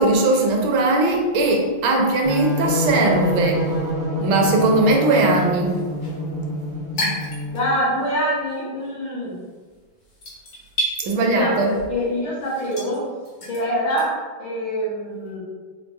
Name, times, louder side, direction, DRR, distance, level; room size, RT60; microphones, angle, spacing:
voice 1, 0.0-3.7 4.2-5.8 11.0-11.7, right 2 dB, 85° right, 1 dB, 1.5 m, -19 dB
sound 1, 2.2-7.7, left 1 dB, 15° right, 0.6 m, -26 dB
sound 2, 5.4-8.1 8.4-14.1, equal, 60° left, 1.4 m, -32 dB
voice 2, 7.5-9.4 11.1-13.1 13.5-15.4, equal, 80° left, -9 dB, 1.8 m, -25 dB
5.0 x 2.3 x 2.5 m, 1.4 s
omnidirectional pair, 2.2 m